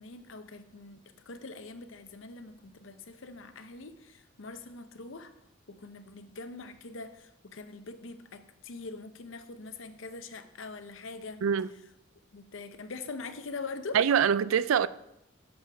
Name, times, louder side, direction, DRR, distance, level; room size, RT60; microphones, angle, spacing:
voice 1, 0.0-5.3 5.7-11.4 12.3-14.0, left 3 dB, 75° left, 0.7 m, -43 dB
voice 2, 11.4-11.7 13.9-14.9, right 8 dB, 85° right, 0.3 m, -24 dB
13.0 x 6.5 x 3.4 m
head